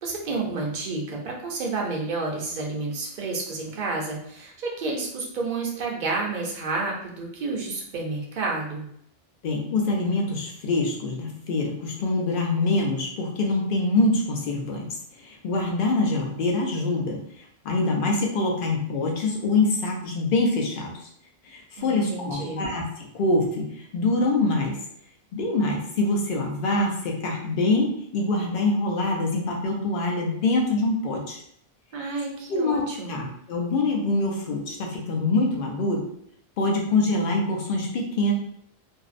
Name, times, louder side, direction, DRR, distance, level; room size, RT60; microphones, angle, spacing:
voice 1, 0.0-8.8 21.8-22.7 31.9-33.2, right 3 dB, 55° right, -1 dB, 0.7 m, -30 dB
voice 2, 9.4-14.9 15.2-20.9 21.4-22.8 23.1-23.6 23.9-24.8 25.3-31.4 32.5-36.0 36.6-38.3, left 2 dB, 60° left, 0 dB, 0.7 m, -25 dB
2.5 x 2.0 x 2.4 m, 0.69 s
omnidirectional pair, 1.1 m